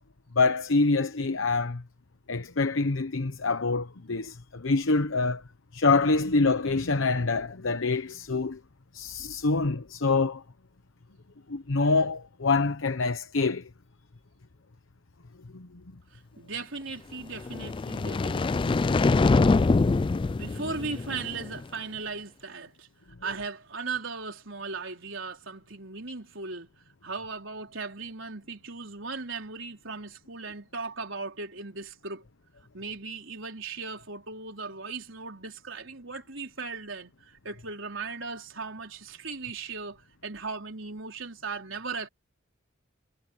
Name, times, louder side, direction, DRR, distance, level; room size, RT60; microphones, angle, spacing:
voice 1, 0.3-1.8 2.3-5.4 5.7-8.6 8.9-10.4 11.5-13.7 15.5-15.8, left 3 dB, 75° left, 1.0 m, -26 dB
voice 2, 16.1-18.8 20.3-22.9 23.2-26.7 27.0-32.2 32.7-42.1, right 4 dB, 70° right, 4.4 m, -37 dB
sound 1, 17.4-21.6, left 3 dB, 25° left, 0.3 m, -24 dB
head